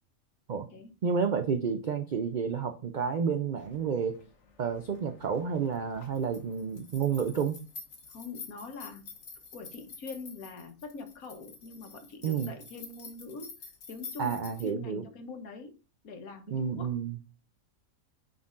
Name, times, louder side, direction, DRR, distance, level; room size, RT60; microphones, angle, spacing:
voice 1, 1.0-4.2 4.6-7.6 12.2-12.5 14.2-15.0 16.5-17.2, right 6 dB, 75° right, 7 dB, 0.4 m, -30 dB
sound 1, 3.6-14.7, left 5 dB, 55° left, 1.3 m, -49 dB
voice 2, 8.1-9.1 9.5-15.8 16.0-16.9, left 4 dB, 80° left, 5 dB, 1.5 m, -44 dB
9.3 x 4.0 x 2.5 m, 0.33 s
omnidirectional pair, 1.5 m